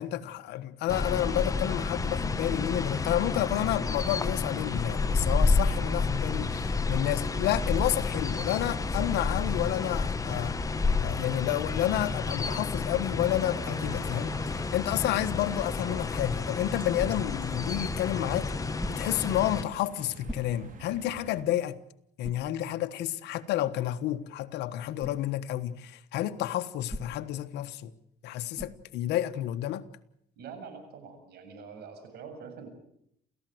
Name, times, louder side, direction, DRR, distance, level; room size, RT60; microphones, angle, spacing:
voice 1, 0.0-10.6 11.0-18.5 18.9-21.8 22.2-27.9 28.2-29.8, left 13 dB, 80° left, 1.4 m, -30 dB
sound 1, 0.9-19.6, left 4 dB, 20° left, 1.3 m, -30 dB
sound 2, 13.6-21.4, right 5 dB, 50° right, 4.5 m, -50 dB
sound 3, 18.8-19.3 20.2-20.9 21.4-21.5 22.2-22.6 25.0-25.2 26.9-27.4 28.5-28.9, equal, 5° left, 2.0 m, -41 dB
voice 2, 30.4-32.7, right 5 dB, 70° right, 7.5 m, -45 dB
29.0 x 15.0 x 7.9 m
cardioid pair, 110°, 17 cm